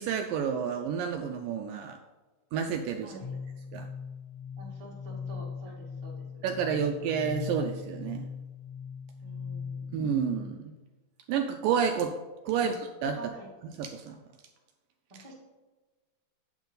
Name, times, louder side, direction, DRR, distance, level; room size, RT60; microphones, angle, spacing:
voice 1, 0.0-2.0 2.5-3.2 3.7-3.9 6.4-8.3 9.9-10.7 11.3-12.1 12.5-13.2 13.8-14.2 15.1-15.2, right 7 dB, 80° right, 5 dB, 2.0 m, -30 dB
voice 2, 3.0-3.4 4.6-6.4 9.2-9.9 13.1-13.5 15.1-15.3, right 2 dB, 20° right, -4 dB, 0.9 m, -48 dB
sound 1, 3.2-10.8, left 6 dB, 65° left, 3.3 m, -40 dB
9.3 x 7.9 x 3.9 m, 1.2 s
omnidirectional pair, 4.3 m